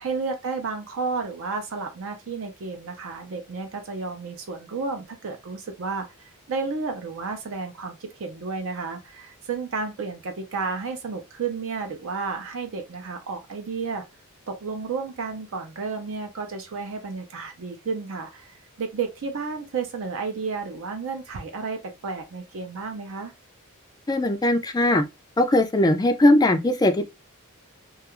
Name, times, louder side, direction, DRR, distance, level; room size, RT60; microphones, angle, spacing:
voice 1, 0.0-14.0 14.5-23.3, right 4 dB, 65° right, 0.5 m, -32 dB
voice 2, 24.1-25.0 25.4-27.0, left 1 dB, 15° left, 0.3 m, -19 dB
2.3 x 2.3 x 2.9 m
head